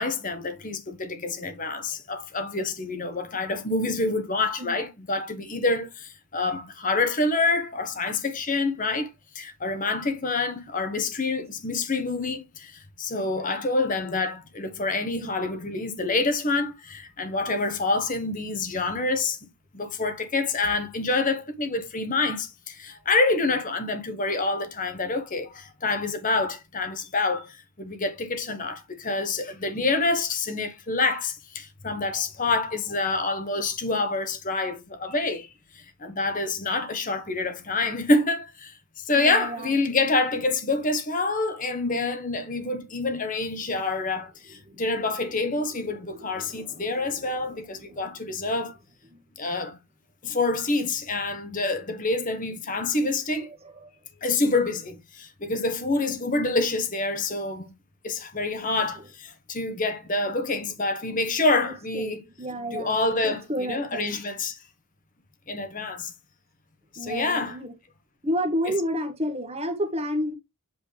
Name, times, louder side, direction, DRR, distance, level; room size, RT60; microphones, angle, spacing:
voice 1, 0.0-9.1 9.3-19.4 19.7-35.5 35.7-48.8 49.4-49.8 50.2-53.5 54.2-57.7 58.0-62.2 62.7-64.6 65.5-66.1 66.9-67.6 68.7-68.8, left 3 dB, 35° left, 1.2 m, -27 dB
voice 2, 39.1-39.8 44.6-48.4 53.3-53.9 58.9-59.1 61.6-64.2 67.0-67.7 68.2-70.3, equal, 25° right, 1.6 m, -32 dB
8.0 x 4.3 x 3.3 m
head